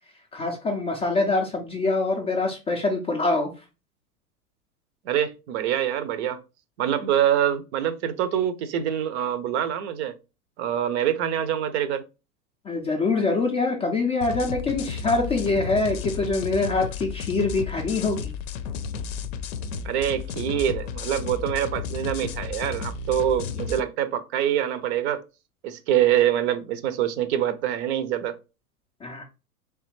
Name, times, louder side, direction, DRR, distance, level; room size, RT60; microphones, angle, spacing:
voice 1, 0.3-3.5 12.6-18.3 29.0-29.2, left 3 dB, 15° left, 0.4 m, -24 dB
voice 2, 5.1-6.4 6.8-10.1 10.6-12.0 19.8-25.2 25.6-28.4, right 10 dB, 45° right, 0.6 m, -25 dB
sound 1, 14.2-23.8, left 6 dB, 55° left, 0.6 m, -33 dB
3.3 x 3.3 x 3.1 m
hypercardioid pair, 105°, 46 cm